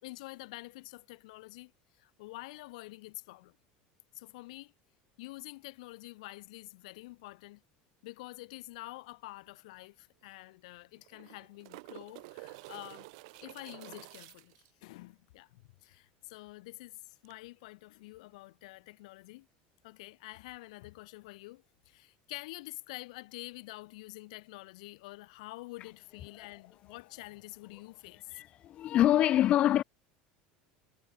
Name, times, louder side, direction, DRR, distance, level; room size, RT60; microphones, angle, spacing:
voice 1, 0.0-3.6 4.1-4.7 5.2-7.6 8.0-13.1 13.4-19.5 19.8-28.4, left 21 dB, 90° left, 1.2 m, -48 dB
sound 1, 9.5-9.6 9.8-9.9 11.0-14.7 17.3-17.4, right 27 dB, 70° right, 0.6 m, -50 dB
voice 2, 28.3-29.8, left 12 dB, 30° left, 0.6 m, -25 dB
cardioid pair, 175°, 4 cm